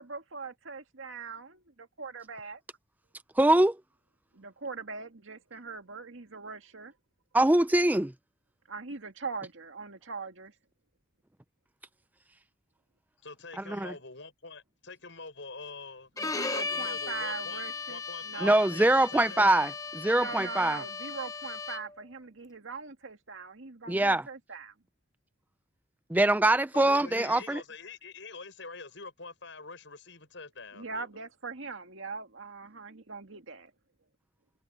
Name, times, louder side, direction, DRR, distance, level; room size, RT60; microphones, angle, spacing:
voice 1, 0.0-2.6 4.3-6.9 8.7-10.5 16.2-18.6 20.1-24.7 30.7-33.7, right 4 dB, 90° right, 2.0 m, -41 dB
voice 2, 3.4-3.8 7.3-8.1 13.7-13.9 18.4-20.8 23.9-24.3 26.1-27.6, right 1 dB, 10° right, 0.4 m, -23 dB
voice 3, 13.2-16.1 16.5-17.6 17.9-19.6 26.7-31.1, left 4 dB, 70° left, 6.3 m, -45 dB
Bowed string instrument, 16.2-22.0, left 4 dB, 15° left, 0.8 m, -37 dB
head